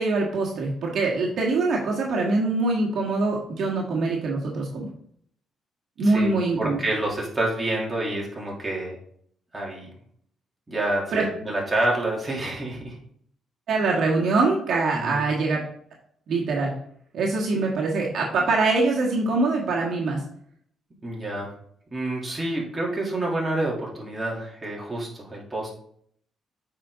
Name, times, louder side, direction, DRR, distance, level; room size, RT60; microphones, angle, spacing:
voice 1, 0.0-4.9 6.0-6.8 11.1-11.2 13.7-15.6 16.3-16.7 17.1-20.2, right 3 dB, 65° right, -2 dB, 1.6 m, -23 dB
voice 2, 6.1-9.0 9.5-9.9 10.7-13.0 14.9-15.2 21.0-21.5 21.9-25.7, right 1 dB, 20° right, -3 dB, 2.9 m, -28 dB
8.1 x 5.1 x 3.7 m, 0.65 s
cardioid pair, 90°, 0 cm